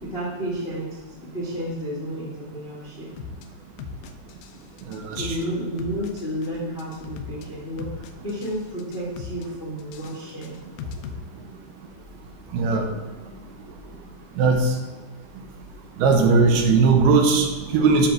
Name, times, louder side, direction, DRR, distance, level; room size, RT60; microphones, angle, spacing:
voice 1, 0.0-3.1 5.2-10.6, equal, 45° left, -7 dB, 0.7 m, -31 dB
sound 1, 3.2-3.4 3.8-4.5 4.8-5.4 5.8-6.5 6.8-7.4 7.8-8.5 8.8-9.5 9.8-11.2, left 6 dB, 85° left, 2.0 m, -37 dB
voice 2, 4.9-5.5 12.5-12.9 14.4-14.7 16.0-18.1, right 4 dB, 75° right, 3 dB, 2.8 m, -19 dB
10.0 x 3.7 x 6.3 m, 1.2 s
omnidirectional pair, 4.6 m